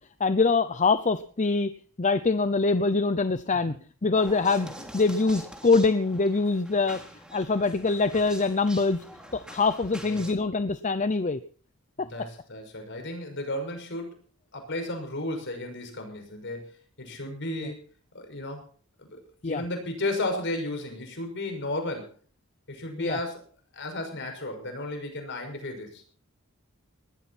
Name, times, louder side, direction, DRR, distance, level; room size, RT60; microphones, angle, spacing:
voice 1, 0.2-1.7 2.0-3.7 4.0-7.0 7.3-9.0 9.3-11.4 12.0-12.1 17.6-17.7 19.4-19.6 23.0-23.2, left 3 dB, 35° left, 11 dB, 0.7 m, -24 dB
sound 1, 4.1-10.3, right 1 dB, 5° right, 3.1 m, -45 dB
voice 2, 12.0-14.2 14.5-16.7 17.0-17.8 18.1-18.6 19.0-22.1 22.7-23.4 23.7-26.0, left 1 dB, 55° left, 5 dB, 6.1 m, -34 dB
20.0 x 14.0 x 4.3 m, 0.44 s
head